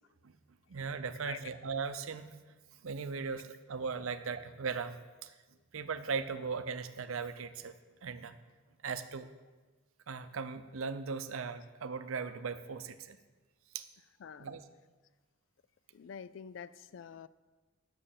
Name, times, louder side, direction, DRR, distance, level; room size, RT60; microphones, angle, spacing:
voice 1, 0.7-2.3 2.8-5.0 5.2-5.3 5.7-7.7 8.0-8.3 8.8-9.3 10.1-13.2 13.7-13.9 14.4-14.6, right 5 dB, 80° right, 11 dB, 0.6 m, -38 dB
voice 2, 15.9-17.3, left 7 dB, 60° left, 17 dB, 0.3 m, -46 dB
8.8 x 6.6 x 7.2 m, 1.3 s
head